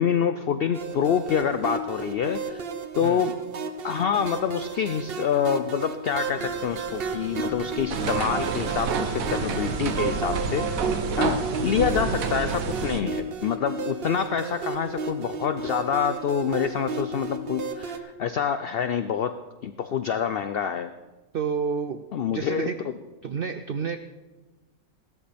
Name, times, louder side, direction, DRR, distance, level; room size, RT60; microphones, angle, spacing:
voice 1, 0.0-2.7 3.0-3.4 3.8-10.7 11.2-20.9 22.1-23.0, left 7 dB, 85° left, 10 dB, 0.5 m, -27 dB
sound 1, 0.7-18.0, right 4 dB, 50° right, 0.9 m, -32 dB
sound 2, 6.4-11.8, left 1 dB, 10° right, 1.1 m, -44 dB
sound 3, 7.9-13.0, right 5 dB, 70° right, 1.3 m, -29 dB
voice 2, 11.8-12.2 21.3-22.9 23.2-24.0, right 6 dB, 90° right, 10 dB, 0.5 m, -30 dB
16.5 x 13.0 x 3.4 m, 1.2 s
omnidirectional pair, 1.6 m